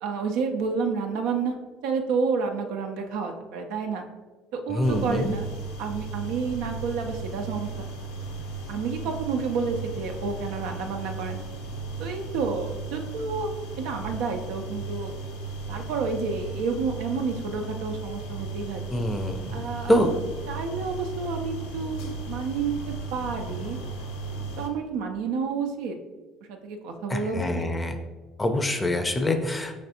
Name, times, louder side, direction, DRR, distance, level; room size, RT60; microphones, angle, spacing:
voice 1, 0.0-1.6 1.8-4.0 4.5-5.5 5.8-7.8 8.7-11.4 12.0-13.5 13.8-15.1 15.7-19.0 19.5-20.0 20.5-23.8 24.6-26.0 26.5-27.7, right 5 dB, 70° right, 4 dB, 0.4 m, -30 dB
voice 2, 4.7-5.4 18.9-19.6 19.9-20.2 27.1-28.0 28.4-29.8, left 1 dB, 15° left, 7 dB, 0.5 m, -25 dB
sound 1, 4.8-24.7, right 3 dB, 75° left, 0.5 m, -36 dB
5.3 x 3.3 x 2.8 m, 1.3 s
hypercardioid pair, 60°, 0 cm